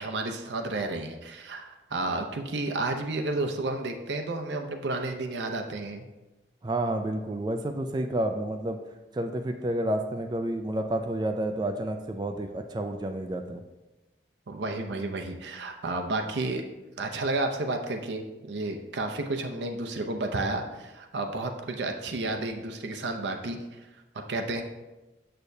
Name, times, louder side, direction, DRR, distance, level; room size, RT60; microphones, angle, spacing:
voice 1, 0.0-6.1 14.5-16.6 17.0-23.8 24.1-24.6, right 2 dB, 75° right, 4 dB, 0.6 m, -31 dB
voice 2, 6.6-8.8 9.1-13.6, right 1 dB, 25° right, 6 dB, 0.3 m, -30 dB
6.8 x 6.4 x 2.6 m, 1.1 s
head